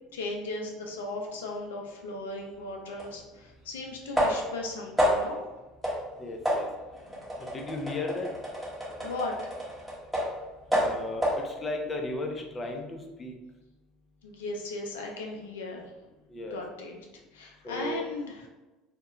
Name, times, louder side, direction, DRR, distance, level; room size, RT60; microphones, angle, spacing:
voice 1, 0.1-5.4 9.0-9.5 14.2-15.9 16.5-17.1 17.3-18.5, left 2 dB, 90° left, 1 dB, 0.4 m, -37 dB
sound 1, 3.0-3.1 4.2-4.6 5.0-5.4 5.8-6.1 6.5-10.4 10.7-11.5, equal, 5° right, 0.9 m, -29 dB
voice 2, 6.2-6.7 7.5-8.3 10.8-13.3 16.3-16.6 17.6-18.0, left 2 dB, 25° left, 2 dB, 0.5 m, -35 dB
2.3 x 2.1 x 2.9 m, 1.1 s
hypercardioid pair, 85°, 0 cm